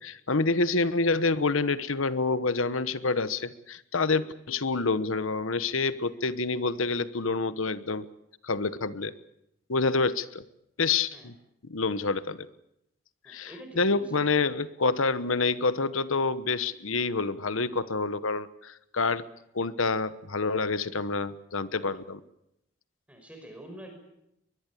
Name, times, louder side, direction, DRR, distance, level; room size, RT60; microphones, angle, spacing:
voice 1, 0.0-8.0 8.4-9.1 9.7-10.4 10.8-11.3 11.6-12.5 13.3-19.3 19.5-22.2, left 3 dB, 85° left, 14 dB, 1.1 m, -27 dB
voice 2, 13.2-14.2 23.1-24.0, right 1 dB, 5° right, 4 dB, 5.5 m, -45 dB
22.5 x 21.5 x 8.5 m, 0.82 s
head